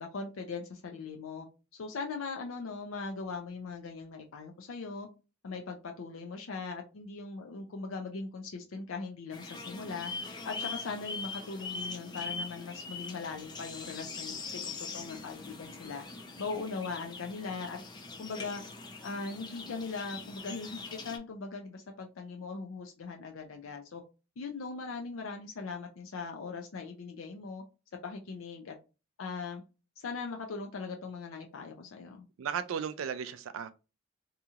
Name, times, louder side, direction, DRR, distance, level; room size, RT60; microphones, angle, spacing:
voice 1, 0.0-1.5 1.7-5.1 5.4-10.1 10.4-16.0 16.4-17.8 18.2-18.6 19.0-24.0 24.4-27.6 28.0-28.8 29.2-29.6 30.0-32.2, left 4 dB, 80° left, 0.5 m, -40 dB
sound 1, 9.3-21.2, left 4 dB, 20° left, 0.4 m, -42 dB
voice 2, 32.4-33.7, right 7 dB, 75° right, 0.3 m, -35 dB
2.8 x 2.8 x 2.3 m
head